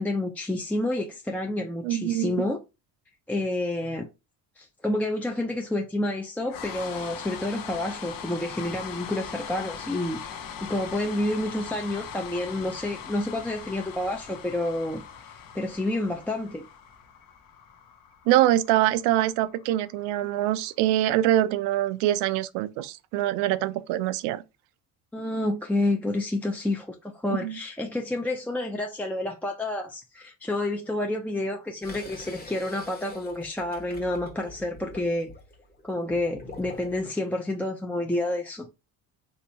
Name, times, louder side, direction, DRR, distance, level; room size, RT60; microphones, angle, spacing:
voice 1, 0.0-2.6 3.3-4.1 4.6-16.6 19.2-19.3 25.1-35.3 35.8-38.7, left 1 dB, 5° left, 0.4 m, -29 dB
voice 2, 1.8-2.3 18.3-24.4 27.3-27.6, right 13 dB, 75° right, 0.5 m, -24 dB
sound 1, 6.5-20.6, left 7 dB, 55° left, 0.8 m, -41 dB
sound 2, 31.8-37.2, left 2 dB, 20° left, 1.0 m, -44 dB
3.2 x 2.8 x 2.7 m
supercardioid pair, 90°, 41 cm